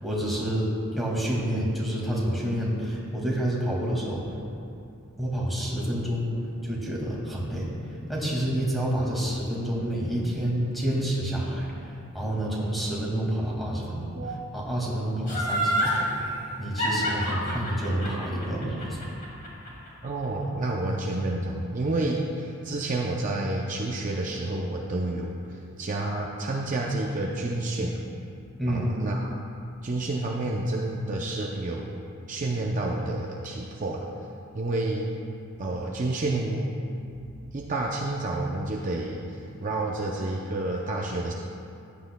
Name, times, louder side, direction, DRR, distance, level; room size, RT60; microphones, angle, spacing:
voice 1, 0.0-4.3 5.2-6.3 6.6-19.1 28.6-28.9, right 1 dB, ahead, -5 dB, 1.9 m, -29 dB
Laughter, 15.3-16.0 16.8-19.9 20.2-20.3, equal, 40° left, 2.3 m, -27 dB
voice 2, 20.0-28.0 28.7-29.3 29.8-34.1 34.5-35.1 35.6-36.7 37.5-41.3, right 2 dB, 35° right, -1 dB, 0.5 m, -29 dB
14.5 x 10.0 x 2.2 m, 2.5 s
head